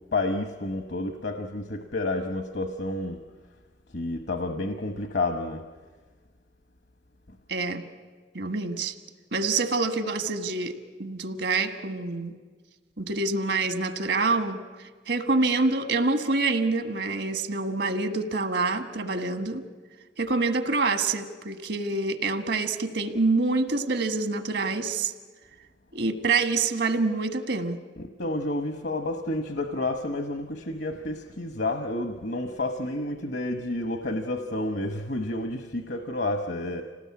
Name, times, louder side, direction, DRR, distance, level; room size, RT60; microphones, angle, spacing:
voice 1, 0.1-3.2 3.9-5.6 28.0-36.8, left 2 dB, 65° left, 6 dB, 1.1 m, -30 dB
voice 2, 7.5-7.8 8.3-8.9 9.3-10.7 11.0-12.3 13.0-14.6 15.1-19.6 20.2-25.1 25.9-27.8, right 3 dB, 75° right, 8 dB, 1.5 m, -26 dB
26.5 x 18.5 x 8.5 m, 1.4 s
head